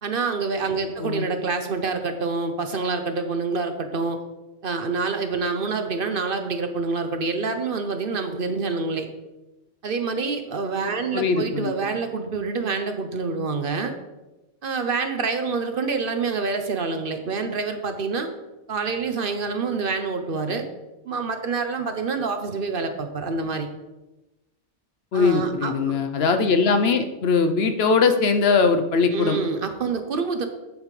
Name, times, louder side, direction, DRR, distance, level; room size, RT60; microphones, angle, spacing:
voice 1, 0.0-4.2 4.6-9.1 9.8-13.9 14.6-18.3 18.7-20.7 21.0-23.7 25.1-26.0 29.1-30.5, right 4 dB, 55° right, 7 dB, 0.9 m, -27 dB
voice 2, 11.1-11.7 25.1-29.4, left 4 dB, 65° left, 8 dB, 0.9 m, -21 dB
8.6 x 8.3 x 3.2 m, 1.0 s
omnidirectional pair, 1.2 m